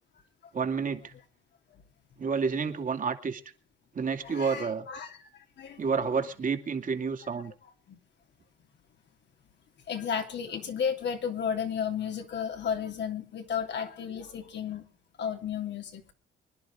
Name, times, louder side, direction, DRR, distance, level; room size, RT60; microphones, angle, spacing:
voice 1, 0.5-1.1 2.2-3.4 3.9-4.9 5.8-7.5, right 5 dB, 40° right, 6 dB, 2.3 m, -29 dB
voice 2, 4.2-5.3 5.6-6.0 7.9-8.0 9.9-14.8 15.2-16.0, left 7 dB, 60° left, 4 dB, 3.1 m, -33 dB
25.0 x 11.0 x 3.7 m, 0.36 s
cardioid pair, 90°, 20 cm